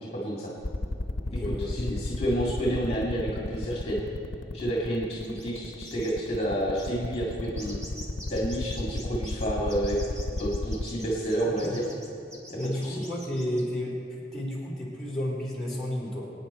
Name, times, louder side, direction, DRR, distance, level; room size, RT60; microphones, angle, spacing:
voice 1, 0.1-0.5 1.3-1.4 1.7-4.0 4.5-7.8 8.3-10.0 10.4-11.8 12.5-13.0, right 1 dB, 30° left, -4 dB, 2.1 m, -29 dB
sound 1, 0.6-10.8, left 2 dB, 65° left, 0.8 m, -31 dB
voice 2, 1.2-1.7 11.4-11.8 12.5-16.3, left 1 dB, ahead, -6 dB, 3.4 m, -32 dB
sound 2, 5.2-5.6 5.8-6.1 6.4-6.5 6.8-13.6, equal, 15° right, 2.0 m, -46 dB
24.5 x 9.4 x 4.3 m, 2.8 s
head